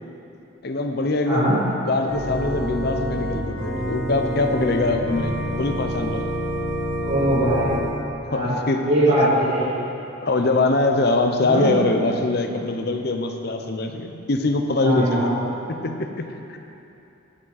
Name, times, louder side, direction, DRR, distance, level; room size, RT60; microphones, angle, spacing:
voice 1, 0.6-6.3 8.3-8.9 9.2-9.3 10.2-15.4 15.7-16.6, left 2 dB, 50° left, 5 dB, 0.6 m, -23 dB
Organ, 2.1-7.9, equal, 45° right, 2.0 m, -27 dB
voice 2, 7.0-7.7 8.2-9.7 11.4-11.7 14.8-15.3, right 1 dB, 70° right, -14 dB, 2.4 m, -21 dB
14.5 x 6.1 x 4.0 m, 2.8 s
head